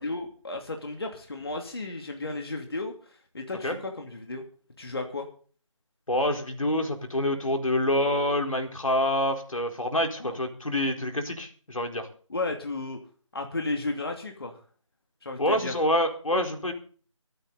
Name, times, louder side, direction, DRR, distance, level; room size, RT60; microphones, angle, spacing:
voice 1, 0.0-4.4 4.8-5.3 10.2-10.4 12.3-13.0 13.3-14.6 15.2-15.7, left 2 dB, 50° left, 3 dB, 2.7 m, -34 dB
voice 2, 6.1-12.1 15.4-16.7, left 1 dB, 90° left, 3 dB, 4.3 m, -26 dB
24.5 x 8.9 x 4.1 m, 0.42 s
figure-of-eight pair, 175°, 17 cm